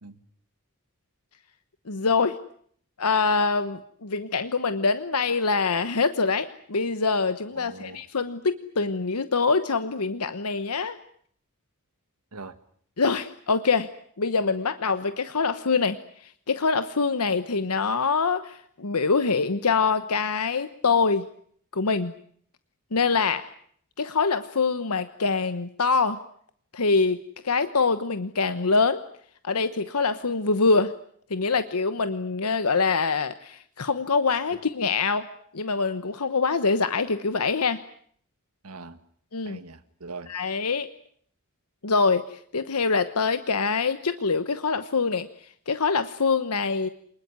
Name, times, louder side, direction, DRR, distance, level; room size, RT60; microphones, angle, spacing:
voice 1, 1.9-2.4 3.0-11.0 13.0-13.9 14.2-21.3 21.7-22.1 22.9-23.5 24.0-26.2 26.7-29.0 29.4-30.9 31.3-35.3 35.5-37.8 39.3-39.6 40.3-40.9 41.8-46.9, left 4 dB, 80° left, 11 dB, 1.1 m, -24 dB
voice 2, 7.5-8.0 12.3-12.6 38.6-39.0 39.5-40.3, right 3 dB, 80° right, 11 dB, 1.8 m, -41 dB
27.0 x 20.5 x 9.6 m, 0.64 s
head